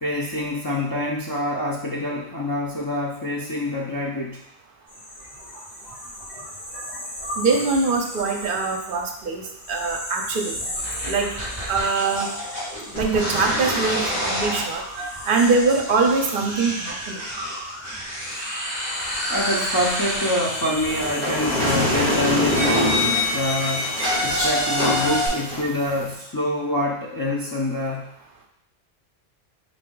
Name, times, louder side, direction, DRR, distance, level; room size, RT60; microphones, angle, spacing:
voice 1, 0.0-4.4 19.3-23.0 23.3-23.9 24.2-28.0, left 1 dB, 35° left, -4 dB, 0.3 m, -26 dB
sound 1, 4.9-14.1 14.7-23.5 24.0-24.5, equal, 70° left, 2.3 m, -37 dB
voice 2, 7.4-10.6 11.0-11.3 11.7-12.3 12.9-14.8 15.3-17.2, right 4 dB, 55° right, 2 dB, 0.8 m, -23 dB
sound 2, 10.8-25.3, left 1 dB, 15° left, 1.8 m, -28 dB
sound 3, 20.9-26.1, left 1 dB, 55° left, 1.3 m, -25 dB
3.8 x 3.4 x 3.8 m, 0.75 s
omnidirectional pair, 1.1 m